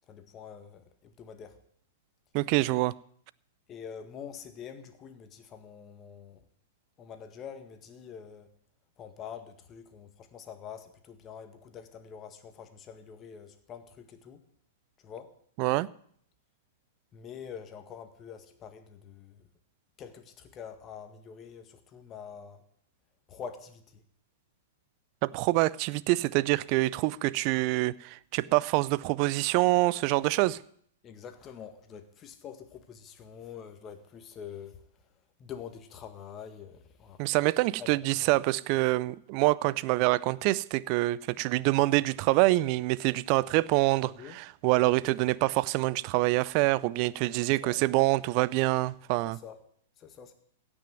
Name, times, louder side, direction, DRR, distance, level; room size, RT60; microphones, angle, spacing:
voice 1, 0.1-1.6 3.7-6.4 7.0-8.5 9.0-14.4 15.0-15.3 17.1-19.4 20.0-22.6 23.3-24.0 31.0-34.8 35.4-37.2 37.8-37.9 38.2-38.3 44.0-44.4 44.7-45.0 47.6-47.8 49.4-49.6 50.0-50.3, left 7 dB, 30° left, 1.8 m, -45 dB
voice 2, 2.3-2.9 15.6-15.9 25.2-30.6 37.2-49.4, right 20 dB, 45° right, 0.4 m, -26 dB
16.5 x 6.2 x 9.1 m
figure-of-eight pair, 105°, 0 cm